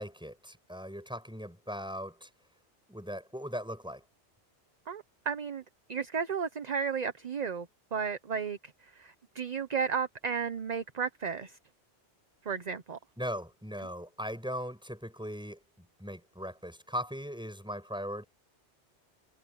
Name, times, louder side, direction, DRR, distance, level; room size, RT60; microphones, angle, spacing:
voice 1, 0.0-2.3 2.9-4.0 13.2-18.2, equal, 5° right, 7.1 m, -39 dB
voice 2, 4.9-5.6 5.9-7.7 7.9-8.6 9.0-11.5 12.5-13.0, right 6 dB, 40° right, 0.9 m, -33 dB
omnidirectional pair, 1.2 m